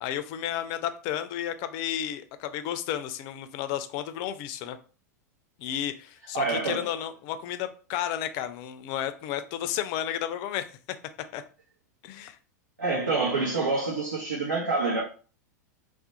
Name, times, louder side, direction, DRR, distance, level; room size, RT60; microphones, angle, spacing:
voice 1, 0.0-4.8 5.6-10.7 11.3-11.4 12.0-12.4, left 10 dB, 45° left, 0.4 m, -32 dB
voice 2, 6.3-6.9 12.8-15.0, right 3 dB, 90° right, 0.8 m, -27 dB
2.4 x 2.0 x 2.7 m
figure-of-eight pair, 90°, 10 cm